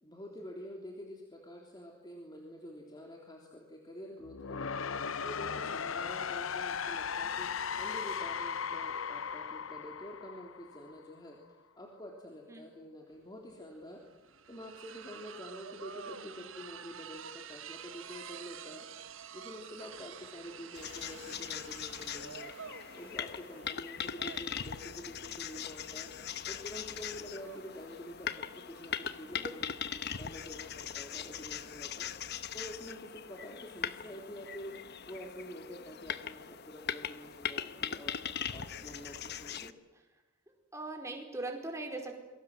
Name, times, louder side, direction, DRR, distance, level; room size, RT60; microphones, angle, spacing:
voice 1, 0.0-4.9 5.2-11.4 11.8-14.0 14.5-18.9 19.3-22.5 22.9-26.1 26.4-32.1 32.5-34.8 35.1-38.2 38.5-39.7, equal, 20° left, 0 dB, 3.4 m, -47 dB
sound 1, 4.2-11.2, left 6 dB, 80° left, 0.8 m, -37 dB
sound 2, 13.2-13.3 13.5-32.4, right 7 dB, 75° right, 1.6 m, -50 dB
sound 3, 20.7-39.7, left 8 dB, 55° left, 1.0 m, -40 dB
voice 2, 40.7-42.2, right 2 dB, 15° right, 3 dB, 4.7 m, -40 dB
27.0 x 22.5 x 7.8 m, 1.1 s
head